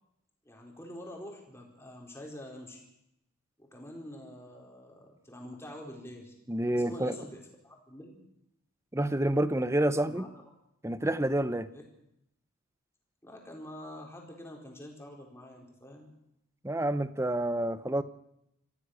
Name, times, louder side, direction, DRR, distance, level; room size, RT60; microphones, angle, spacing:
voice 1, 0.4-2.8 3.6-6.3 6.8-8.2 10.0-10.4 11.7-11.8 13.2-16.1, left 1 dB, 10° left, 0 dB, 4.4 m, -46 dB
voice 2, 6.5-7.2 8.9-10.3 10.8-11.7 16.6-18.0, right 1 dB, 10° right, 14 dB, 0.8 m, -28 dB
26.0 x 15.0 x 6.6 m, 0.81 s
head